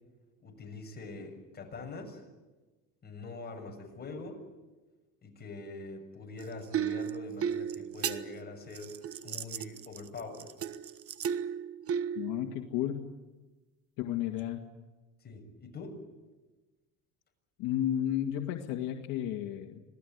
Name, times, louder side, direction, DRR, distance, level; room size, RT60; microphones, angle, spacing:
voice 1, 0.4-2.2 3.0-4.4 5.2-8.9 9.2-10.5 15.2-16.0, left 3 dB, 30° left, 3 dB, 7.0 m, -43 dB
sound 1, 6.4-12.7 14.4-14.5, right 8 dB, 45° right, 1.3 m, -35 dB
voice 2, 12.2-13.1 14.0-14.6 17.6-19.8, left 11 dB, 75° left, 3 dB, 2.1 m, -32 dB
26.5 x 18.0 x 9.6 m, 1.2 s
cardioid pair, 110°, 33 cm